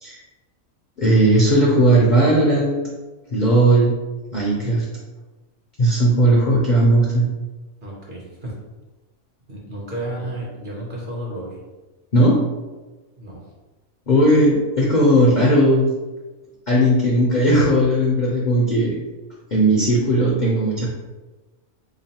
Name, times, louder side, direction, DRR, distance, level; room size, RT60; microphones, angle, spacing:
voice 1, 1.0-2.8 3.3-4.0 4.3-4.9 5.8-7.3 12.1-12.4 14.1-15.9 16.7-19.0 19.5-20.9, right 1 dB, 55° left, -4 dB, 0.5 m, -17 dB
voice 2, 7.8-8.6 9.5-11.6 13.2-13.4, right 1 dB, 50° right, -4 dB, 0.7 m, -32 dB
3.6 x 3.1 x 2.8 m, 1.2 s
omnidirectional pair, 1.5 m